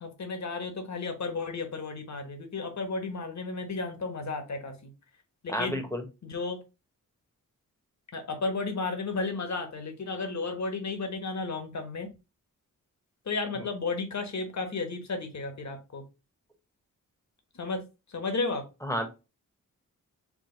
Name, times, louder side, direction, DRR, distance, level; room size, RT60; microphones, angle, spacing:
voice 1, 0.0-4.9 5.4-5.8 6.2-6.6 8.1-12.1 13.3-16.0 17.6-17.8 18.1-18.7, left 3 dB, 55° left, 1.3 m, -33 dB
voice 2, 5.5-6.0 13.6-13.7 18.8-19.1, equal, 10° left, 1.1 m, -31 dB
4.8 x 2.5 x 3.8 m
cardioid pair, 65°, 34 cm